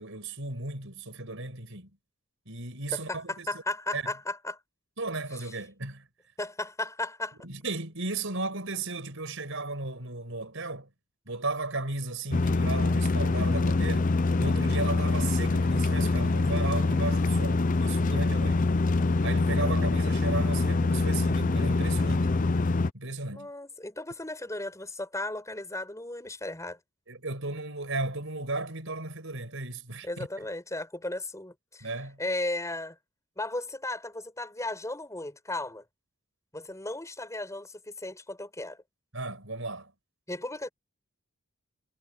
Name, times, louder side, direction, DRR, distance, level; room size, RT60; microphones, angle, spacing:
voice 1, 0.0-1.9 2.4-3.6 3.9-4.0 5.0-6.1 7.4-10.9 11.2-18.6 19.2-22.3 22.9-23.5 27.1-30.1 31.8-32.2 39.1-39.9, right 3 dB, 65° right, 6.8 m, -35 dB
voice 2, 2.9-4.6 6.4-7.4 19.6-19.8 23.3-26.8 30.0-31.9 32.2-33.0 33.4-35.8 36.5-38.8 40.3-40.7, left 2 dB, 15° left, 6.5 m, -35 dB
sound 1, 12.3-22.9, left 3 dB, 40° left, 0.6 m, -25 dB
head